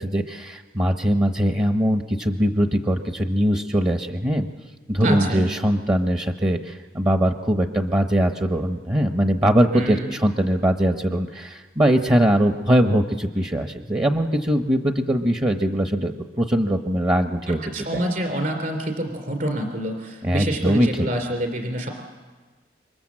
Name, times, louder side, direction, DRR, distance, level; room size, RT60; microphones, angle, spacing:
voice 1, 0.0-4.5 4.9-17.6 17.9-18.0 20.2-21.1, equal, 25° right, 5 dB, 1.0 m, -21 dB
voice 2, 5.0-5.5 9.7-10.1 17.5-21.9, right 1 dB, 50° right, 4 dB, 3.4 m, -27 dB
27.5 x 24.5 x 7.6 m, 1.4 s
head